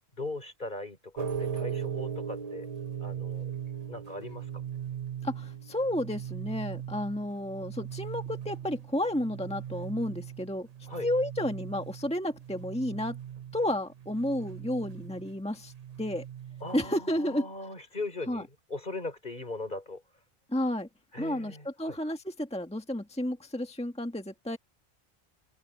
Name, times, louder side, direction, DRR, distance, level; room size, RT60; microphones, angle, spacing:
voice 1, 0.2-2.7 3.0-3.5 3.9-4.5 10.9-11.1 16.6-20.0 21.1-22.0, left 2 dB, 50° left, 4.4 m, -39 dB
sound 1, 1.2-17.0, right 8 dB, 40° right, 1.0 m, -39 dB
voice 2, 5.2-10.7 11.0-13.2 13.5-15.7 16.0-16.2 16.7-17.5 18.3-18.4 20.5-20.9 21.2-24.6, left 1 dB, 5° left, 1.6 m, -31 dB
open air
omnidirectional pair, 1.1 m